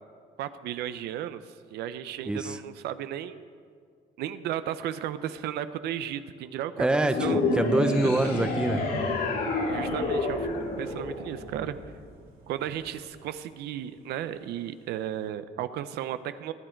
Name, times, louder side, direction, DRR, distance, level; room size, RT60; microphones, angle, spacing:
voice 1, 0.4-3.5 4.2-6.9 7.2-7.4 8.0-8.3 9.7-11.8 12.5-16.5, right 11 dB, 80° right, 12 dB, 0.6 m, -34 dB
voice 2, 2.2-2.6 6.8-8.8, right 1 dB, 5° right, 9 dB, 0.7 m, -26 dB
sound 1, 7.1-11.6, left 3 dB, 65° left, 2.7 m, -28 dB
Thunder / Rain, 8.9-15.3, right 2 dB, 60° right, 2.7 m, -46 dB
20.5 x 8.7 x 4.5 m, 2.1 s
cardioid pair, 110°, 17 cm